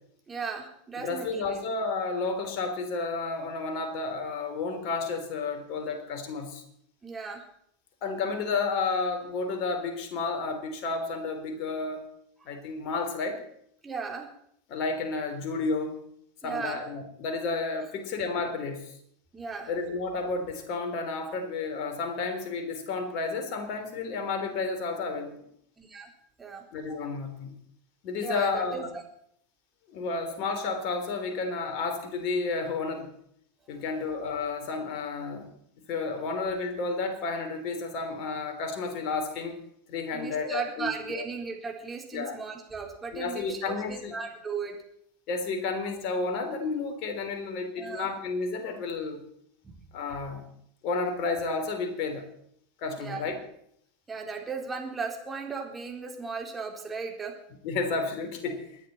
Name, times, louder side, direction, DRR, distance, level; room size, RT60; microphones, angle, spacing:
voice 1, 0.3-1.6 7.0-7.4 13.8-14.3 16.4-16.8 19.3-19.7 25.8-26.1 26.4-26.6 28.2-28.8 40.1-44.8 47.8-48.1 49.6-49.7 53.0-53.2 54.1-57.3, right 5 dB, 20° right, 1 dB, 4.0 m, -36 dB
voice 2, 1.0-6.6 8.0-12.1 12.5-13.4 14.7-16.0 16.4-19.0 19.7-25.3 26.7-27.5 28.0-28.9 29.9-33.1 33.7-35.5 35.9-39.6 39.9-41.2 42.1-42.4 43.1-44.2 45.3-49.2 49.9-50.4 50.8-52.2 52.8-53.4 57.6-58.7, left 4 dB, 50° left, 5 dB, 3.6 m, -31 dB
28.0 x 10.5 x 4.3 m, 0.70 s
figure-of-eight pair, 85°, 0 cm